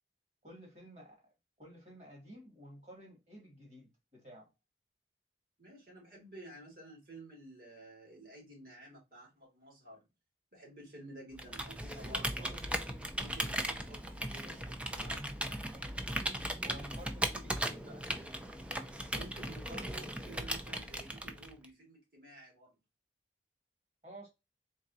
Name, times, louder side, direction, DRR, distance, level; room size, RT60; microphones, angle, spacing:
voice 1, 0.4-1.3 1.6-4.5 16.6-18.1 24.0-24.3, equal, 40° right, 2.0 m, -52 dB
voice 2, 5.6-10.0 10.5-12.7 13.1-15.6 19.1-22.8, right 1 dB, 55° right, 2.6 m, -52 dB
Computer keyboard, 11.4-21.7, right 1 dB, 5° right, 0.4 m, -38 dB
4.0 x 3.6 x 2.7 m
head